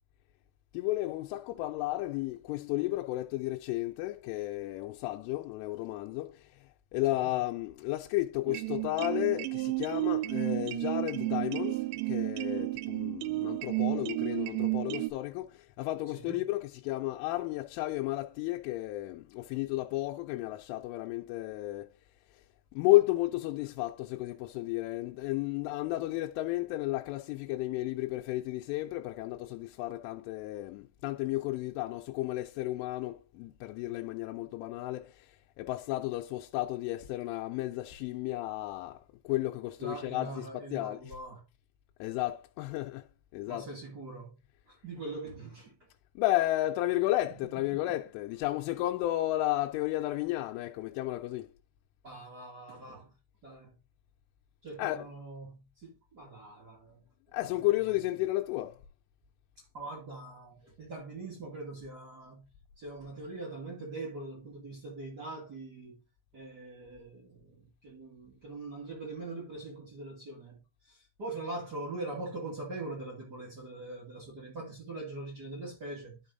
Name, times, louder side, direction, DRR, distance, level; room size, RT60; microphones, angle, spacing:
voice 1, 0.7-6.4 6.9-21.9 22.7-35.3 35.6-41.2 42.0-43.1 43.3-43.7 46.2-51.5 54.8-55.1 57.3-58.8, left 17 dB, 85° left, 3.1 m, -33 dB
sound 1, 8.5-15.1, right 21 dB, 90° right, 2.4 m, -32 dB
voice 2, 39.8-41.4 43.5-44.3 44.7-45.8 47.7-47.8 52.0-53.1 53.4-53.7 54.6-57.0 57.3-58.0 59.7-62.4 62.8-66.0 66.3-76.2, right 2 dB, 35° right, 1.8 m, -42 dB
11.5 x 5.4 x 2.6 m
omnidirectional pair, 5.6 m